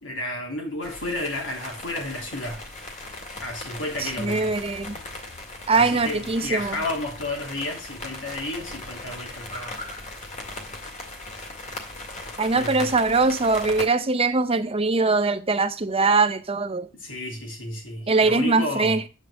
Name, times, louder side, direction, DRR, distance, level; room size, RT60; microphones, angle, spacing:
voice 1, 0.0-2.7 3.4-4.6 5.7-9.8 12.5-12.9 16.9-19.0, left 1 dB, 85° left, 3.0 m, -32 dB
sound 1, 0.8-13.9, left 2 dB, 40° left, 2.0 m, -38 dB
voice 2, 4.0-5.0 5.7-6.8 12.4-16.9 18.1-19.1, right 3 dB, 30° right, 0.7 m, -22 dB
7.6 x 5.1 x 6.5 m
head